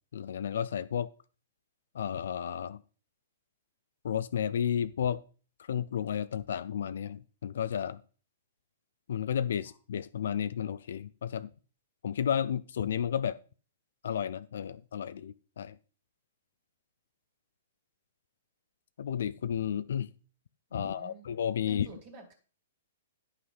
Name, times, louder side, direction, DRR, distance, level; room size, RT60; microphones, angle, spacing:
voice 1, 0.1-1.1 1.9-2.8 4.0-5.2 5.6-8.0 9.1-11.5 12.0-13.4 14.0-15.8 19.0-20.1 20.7-21.9, left 8 dB, 70° left, 14 dB, 0.4 m, -32 dB
voice 2, 20.7-21.2 21.7-22.3, right 2 dB, 45° right, 3 dB, 2.5 m, -48 dB
9.7 x 5.7 x 5.5 m, 0.38 s
hypercardioid pair, 130°, 0 cm